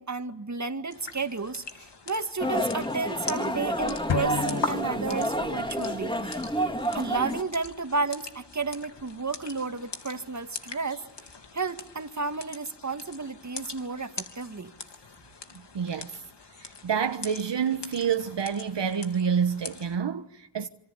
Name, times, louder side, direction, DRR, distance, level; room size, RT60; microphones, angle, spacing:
voice 1, 0.0-6.4 6.9-11.0 11.5-14.7, right 4 dB, 40° right, 2.1 m, -32 dB
sound 1, 0.9-20.0, left 4 dB, 70° left, 3.3 m, -42 dB
sound 2, 2.4-7.4, equal, 10° left, 3.5 m, -29 dB
sound 3, 4.1-5.8, left 7 dB, 85° left, 1.5 m, -33 dB
voice 2, 15.7-16.1 16.6-20.7, right 7 dB, 70° right, 1.3 m, -28 dB
26.5 x 25.0 x 8.4 m
cardioid pair, 50°, 44 cm